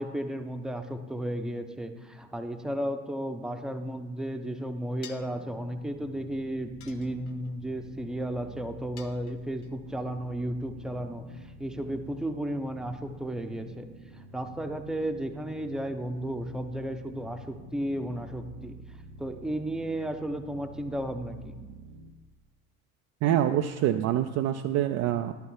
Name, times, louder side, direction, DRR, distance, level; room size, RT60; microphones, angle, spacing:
voice 1, 0.0-11.2 11.6-13.9 14.2-18.8 19.2-21.5, right 1 dB, ahead, 6 dB, 0.7 m, -34 dB
sound 1, 5.0-5.4 6.8-7.5 9.0-9.7, left 9 dB, 80° left, 0.7 m, -49 dB
sound 2, 5.2-22.1, right 1 dB, 75° right, 0.8 m, -49 dB
voice 2, 23.2-25.3, right 11 dB, 40° right, 7 dB, 0.4 m, -26 dB
11.0 x 5.7 x 5.6 m, 1.2 s
figure-of-eight pair, 55°, 43 cm